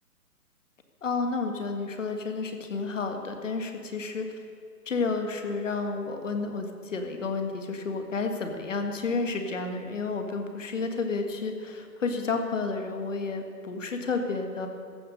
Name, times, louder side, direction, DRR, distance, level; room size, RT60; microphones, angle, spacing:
voice 1, 1.0-4.3 4.9-14.7, left 4 dB, 50° left, 5 dB, 1.8 m, -31 dB
15.0 x 10.5 x 6.5 m, 2.4 s
hypercardioid pair, 180°, 47 cm